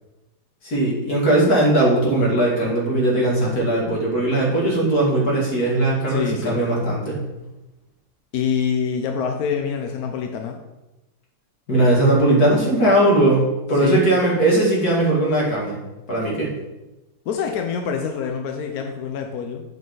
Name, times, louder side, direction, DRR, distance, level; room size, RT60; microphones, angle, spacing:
voice 1, 0.6-7.3 11.7-13.4 13.7-15.8 16.1-16.5, right 1 dB, 50° left, -4 dB, 2.9 m, -19 dB
voice 2, 6.1-6.6 8.3-10.6 13.7-14.0 17.3-19.6, left 7 dB, 65° left, 3 dB, 1.0 m, -25 dB
7.7 x 7.6 x 3.9 m, 1.0 s
omnidirectional pair, 2.2 m